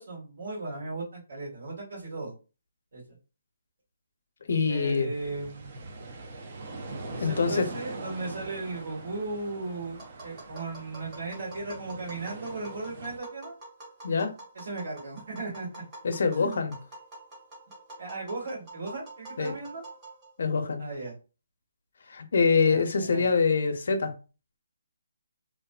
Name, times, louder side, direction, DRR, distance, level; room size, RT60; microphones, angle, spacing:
voice 1, 0.0-2.3 2.9-3.2 4.7-5.8 7.1-13.5 14.5-15.8 16.3-16.6 18.0-19.8 20.8-21.1 22.7-23.3, right 2 dB, 70° right, 1.4 m, -36 dB
voice 2, 4.5-5.1 7.2-7.7 14.0-14.3 16.0-16.7 19.4-19.5 20.4-20.8 22.1-24.1, left 5 dB, 60° left, 0.5 m, -25 dB
sound 1, 5.1-13.2, right 2 dB, 40° right, 0.5 m, -42 dB
Tap, 10.0-20.4, right 2 dB, 20° right, 1.3 m, -47 dB
2.5 x 2.3 x 2.2 m
hypercardioid pair, 170°, 0 cm